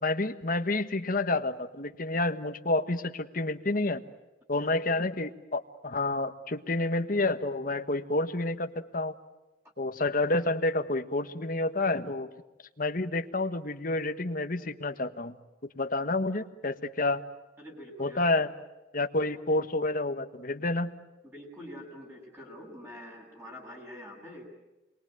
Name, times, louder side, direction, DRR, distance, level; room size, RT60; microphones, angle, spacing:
voice 1, 0.0-4.0 4.5-9.1 9.8-12.3 12.8-15.4 15.7-17.2 18.0-18.5 18.9-20.9, left 2 dB, 50° left, 7 dB, 1.4 m, -29 dB
voice 2, 17.6-18.3 19.3-19.4 21.2-24.5, equal, 15° right, -1 dB, 7.7 m, -45 dB
28.0 x 23.0 x 9.2 m, 1.1 s
head